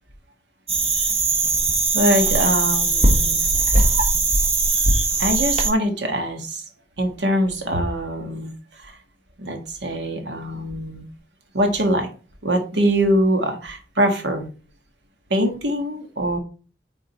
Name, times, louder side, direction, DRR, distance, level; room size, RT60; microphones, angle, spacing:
sound 1, 0.7-5.7, right 3 dB, 35° right, 1.3 m, -19 dB
voice 1, 1.9-3.4 5.2-6.6 7.0-8.5 8.8-9.0 9.4-11.1 11.5-12.1 12.4-14.5 15.3-16.4, equal, 70° right, 5 dB, 1.6 m, -23 dB
8.5 x 3.8 x 4.2 m, 0.37 s
head